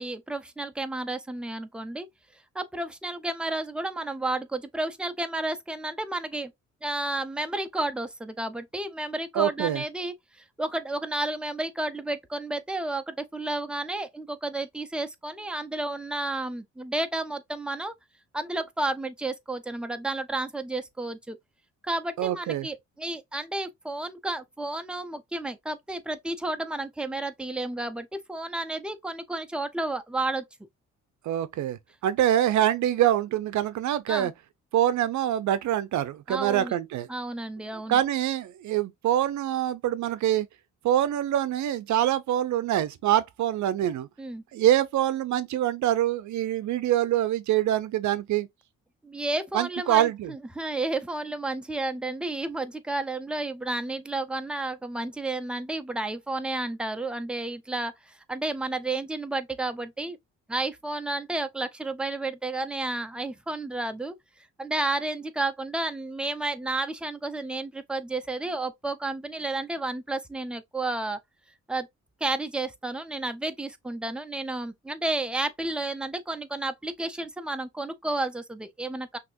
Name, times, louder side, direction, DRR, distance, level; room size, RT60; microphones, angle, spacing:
voice 1, 0.0-2.1 2.5-6.5 6.8-17.9 18.3-21.4 21.8-30.4 34.1-34.3 36.3-36.8 37.1-38.0 44.2-44.4 49.0-60.2 60.5-64.1 64.6-71.2 71.7-71.9 72.2-79.2, right 2 dB, 5° right, 0.8 m, -31 dB
voice 2, 9.3-9.8 22.2-22.7 31.2-34.3 34.7-37.1 37.9-40.5 40.8-44.1 44.5-48.5 49.5-50.3, right 12 dB, 70° right, 0.6 m, -25 dB
5.8 x 3.0 x 2.6 m
cardioid pair, 90°, 30 cm